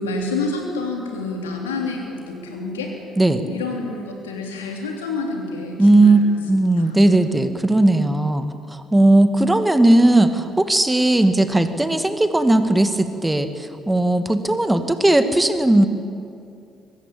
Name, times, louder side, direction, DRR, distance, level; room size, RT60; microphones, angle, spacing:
voice 1, 0.0-2.9 3.4-6.1 6.5-7.0, left 3 dB, 80° left, 1 dB, 3.1 m, -28 dB
voice 2, 5.8-6.2 6.5-8.5 8.7-15.9, right 2 dB, 10° right, 9 dB, 2.0 m, -17 dB
23.0 x 20.0 x 8.6 m, 2.5 s
figure-of-eight pair, 45°, 0 cm